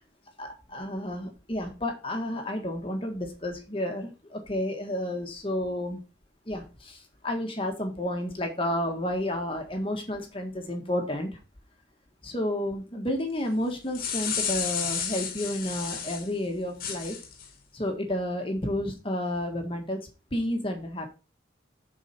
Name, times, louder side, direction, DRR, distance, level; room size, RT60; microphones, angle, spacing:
voice 1, 0.4-6.0 6.5-11.4 12.2-17.2 17.7-21.1, left 1 dB, 30° left, 3 dB, 1.5 m, -31 dB
sound 1, 13.7-16.3 16.8-17.5, left 7 dB, 50° left, 1.5 m, -32 dB
7.3 x 4.9 x 5.8 m, 0.31 s
head